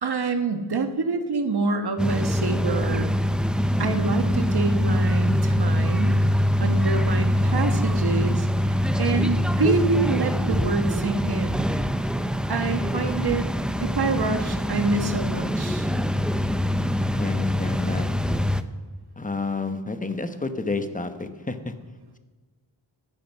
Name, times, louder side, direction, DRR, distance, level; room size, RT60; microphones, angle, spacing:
voice 1, 0.0-3.1 3.8-6.2 6.6-11.7 12.5-13.5 13.8-15.9, right 4 dB, 55° right, 7 dB, 1.3 m, -26 dB
sound 1, 2.0-18.6, equal, ahead, 0.5 m, -24 dB
voice 2, 17.1-18.5 19.2-21.7, left 3 dB, 15° left, 9 dB, 1.0 m, -30 dB
14.0 x 10.5 x 5.5 m, 1.4 s
wide cardioid pair, 105°, 46 cm